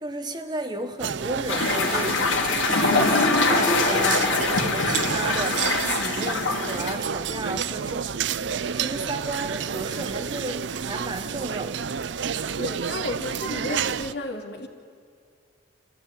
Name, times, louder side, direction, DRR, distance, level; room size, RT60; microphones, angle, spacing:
voice 1, 0.0-2.3 2.8-5.6 6.0-8.1 8.7-11.8, right 2 dB, 20° right, 6 dB, 1.2 m, -33 dB
sound 1, 1.0-14.1, right 7 dB, 70° right, 0.5 m, -30 dB
sound 2, 1.5-6.9, left 3 dB, 85° left, 2.7 m, -23 dB
voice 2, 12.6-14.7, left 2 dB, 60° left, 3 dB, 2.7 m, -33 dB
27.0 x 15.0 x 9.9 m, 2.3 s
head